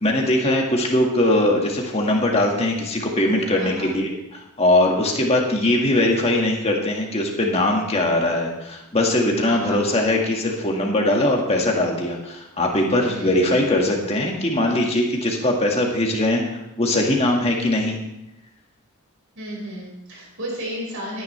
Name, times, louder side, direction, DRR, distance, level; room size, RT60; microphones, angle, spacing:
voice 1, 0.0-18.0, left 1 dB, 30° left, 0 dB, 1.9 m, -21 dB
voice 2, 3.6-3.9 9.4-9.9 13.1-13.6 19.4-21.2, equal, 65° right, -3 dB, 5.5 m, -33 dB
18.0 x 9.7 x 3.4 m, 0.89 s
head